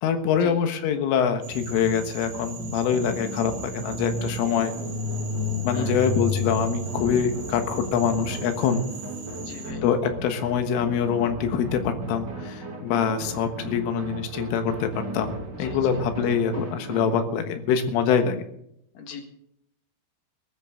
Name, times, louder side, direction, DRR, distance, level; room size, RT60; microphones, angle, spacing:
voice 1, 0.0-4.7 5.6-8.8 9.8-18.5, left 7 dB, 80° left, 7 dB, 3.9 m, -24 dB
Frog, 1.4-9.7, right 5 dB, 75° right, 6.2 m, -42 dB
sound 1, 1.5-11.4, left 2 dB, 35° left, 2.2 m, -34 dB
sound 2, 1.5-17.2, right 1 dB, 30° right, 2.5 m, -37 dB
voice 2, 5.7-6.1 9.4-9.8 15.5-16.0 18.9-19.2, left 5 dB, 55° left, 5 dB, 2.9 m, -39 dB
20.0 x 13.0 x 3.8 m, 0.74 s
omnidirectional pair, 5.7 m